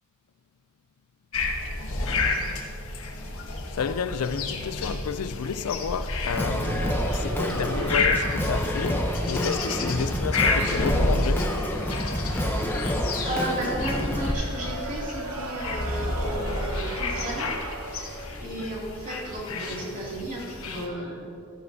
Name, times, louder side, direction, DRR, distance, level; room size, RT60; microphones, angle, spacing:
sound 1, 1.3-20.9, left 2 dB, 70° left, 1.3 m, -30 dB
voice 1, 3.7-11.5, left 6 dB, 90° left, 0.4 m, -31 dB
Singing, 6.3-14.3, equal, 10° left, 0.7 m, -28 dB
sound 2, 6.6-18.3, right 3 dB, 85° right, 0.8 m, -40 dB
voice 2, 12.4-12.8 13.2-17.6 17.9-21.3, right 1 dB, 40° right, 2.6 m, -34 dB
14.5 x 10.0 x 2.7 m
head